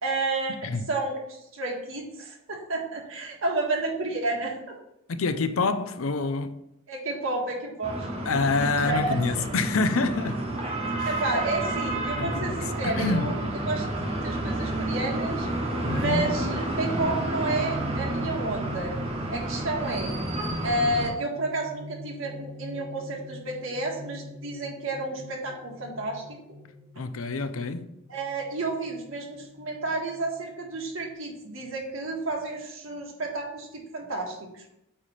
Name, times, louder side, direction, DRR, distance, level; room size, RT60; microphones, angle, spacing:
voice 1, 0.0-0.6 0.9-4.8 6.9-8.1 8.8-9.5 11.0-13.4 13.7-15.5 15.8-18.9 19.3-20.2 20.6-26.4 28.1-34.6, right 2 dB, 75° right, 1.7 m, -31 dB
voice 2, 5.1-6.6 8.3-10.4 11.0-11.1 12.1-13.4 15.8-16.3 27.0-27.9, left 3 dB, 85° left, 0.6 m, -27 dB
sound 1, 7.8-21.1, right 1 dB, 30° right, 1.2 m, -30 dB
sound 2, 11.9-31.1, left 1 dB, 15° left, 1.4 m, -43 dB
8.8 x 3.3 x 5.6 m
head